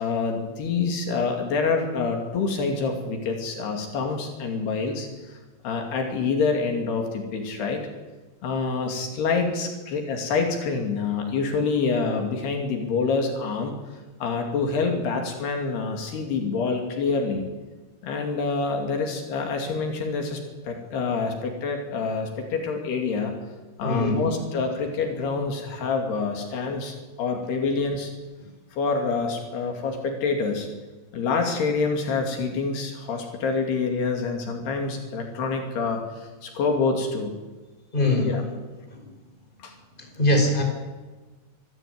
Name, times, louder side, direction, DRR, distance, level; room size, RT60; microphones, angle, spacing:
voice 1, 0.0-5.4 5.6-7.8 8.4-13.7 14.2-17.4 18.0-23.3 23.8-28.1 28.7-30.7 31.1-37.3 38.2-38.4 39.6-39.7, left 4 dB, 75° left, 3 dB, 4.6 m, -26 dB
voice 2, 23.8-24.3 37.9-38.5 40.2-40.6, left 1 dB, 10° left, 3 dB, 5.0 m, -22 dB
25.5 x 14.0 x 9.5 m, 1.2 s
omnidirectional pair, 4.8 m